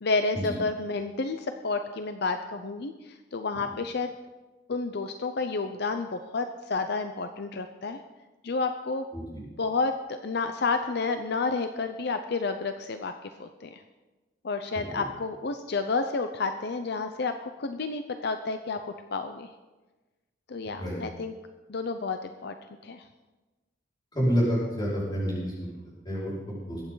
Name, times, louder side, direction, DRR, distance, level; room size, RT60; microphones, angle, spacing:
voice 1, 0.0-4.1 4.7-8.0 8.4-9.1 9.6-13.1 13.4-13.8 14.4-18.8 19.1-19.5 20.5-21.3 21.7-22.5 22.8-23.1, left 4 dB, 60° left, 7 dB, 0.6 m, -30 dB
voice 2, 24.1-26.8, equal, 25° left, -9 dB, 5.3 m, -29 dB
22.0 x 8.8 x 4.0 m, 1.2 s
head